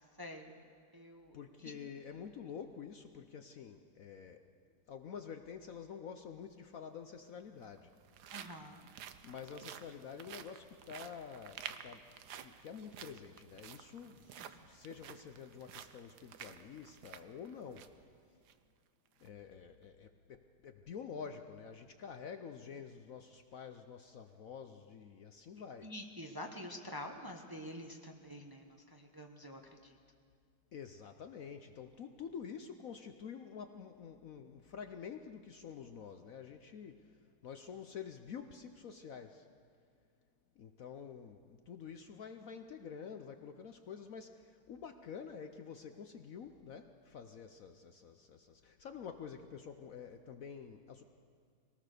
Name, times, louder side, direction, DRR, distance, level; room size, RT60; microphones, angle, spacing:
voice 1, 0.2-0.6 0.9-1.7 8.3-8.9 14.3-14.5 25.8-30.0, left 1 dB, 15° right, 2 dB, 1.0 m, -47 dB
voice 2, 1.3-4.4 4.9-7.9 9.2-12.1 12.4-17.9 19.2-25.9 30.7-37.1 37.4-39.5 40.6-51.0, left 7 dB, 60° left, 7 dB, 1.0 m, -48 dB
sound 1, 6.4-6.5 7.5-18.0 18.4-18.5 19.1-19.3, right 9 dB, 70° right, 1.3 m, -52 dB
23.0 x 18.0 x 6.7 m, 2.2 s
omnidirectional pair, 1.9 m